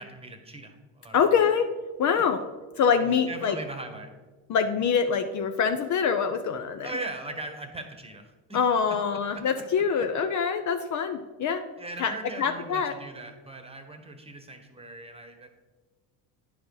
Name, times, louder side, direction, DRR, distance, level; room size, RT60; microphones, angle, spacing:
voice 1, 0.0-1.5 2.1-2.2 3.0-4.1 6.8-8.6 9.3-9.6 11.8-15.5, right 2 dB, 15° right, 6 dB, 1.2 m, -40 dB
voice 2, 1.1-1.7 2.0-2.4 2.8-3.6 4.5-6.9 8.5-11.6 12.0-12.1 12.4-12.9, left 6 dB, 45° left, 8 dB, 0.6 m, -25 dB
9.7 x 5.1 x 4.7 m, 1.3 s
supercardioid pair, 85°, 44 cm